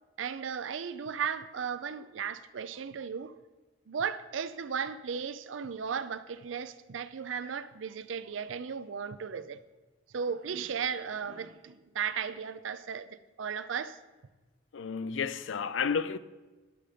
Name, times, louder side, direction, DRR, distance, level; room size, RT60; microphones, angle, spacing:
voice 1, 0.2-3.3 3.9-9.6 10.1-14.0, right 6 dB, 75° right, 0.5 m, -35 dB
voice 2, 14.7-16.2, left 6 dB, 75° left, 0.5 m, -31 dB
12.0 x 5.0 x 5.6 m
head